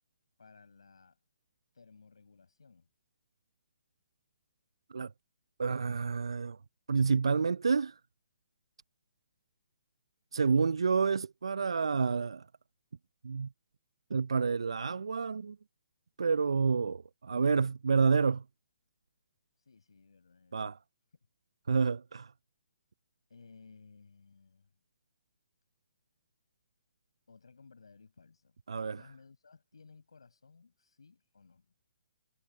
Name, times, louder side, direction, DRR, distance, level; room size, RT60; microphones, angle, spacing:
voice 1, 0.4-1.2 1.7-2.9 10.6-11.0 19.6-20.7 23.3-24.7 27.3-28.6 28.9-31.7, left 4 dB, 80° left, 6.4 m, -58 dB
voice 2, 5.6-6.6 6.9-7.9 10.3-12.4 13.2-13.5 14.1-15.6 16.2-18.4 20.5-20.8 21.7-22.3 28.7-29.0, right 5 dB, 75° right, 0.4 m, -29 dB
figure-of-eight pair, 135°, 3 cm